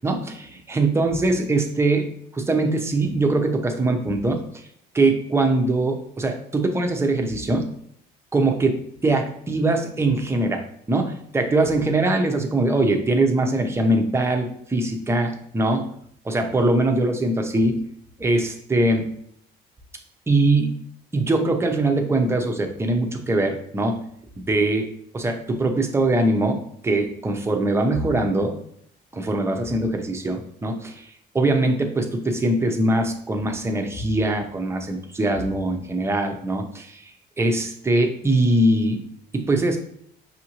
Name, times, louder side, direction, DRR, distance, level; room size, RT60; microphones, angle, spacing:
voice 1, 0.0-2.0 2.3-4.4 4.9-7.7 8.3-15.9 16.2-17.9 18.2-19.1 20.3-20.8 21.1-24.1 24.4-24.9 25.1-28.6 29.1-39.0 39.3-39.8, right 2 dB, 15° right, 4 dB, 0.6 m, -22 dB
5.6 x 2.6 x 2.9 m, 0.66 s
cardioid pair, 110°, 17 cm